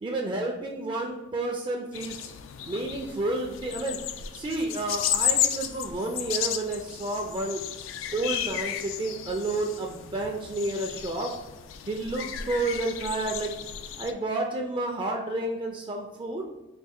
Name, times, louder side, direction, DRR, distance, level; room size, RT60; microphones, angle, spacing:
voice 1, 0.0-2.1 2.7-4.0 4.3-7.6 8.1-11.3 11.9-13.5 14.0-16.4, right 2 dB, 25° right, 1 dB, 0.4 m, -30 dB
sound 1, 1.9-14.1, left 9 dB, 70° left, 0.3 m, -33 dB
4.3 x 2.4 x 3.6 m, 1.0 s
head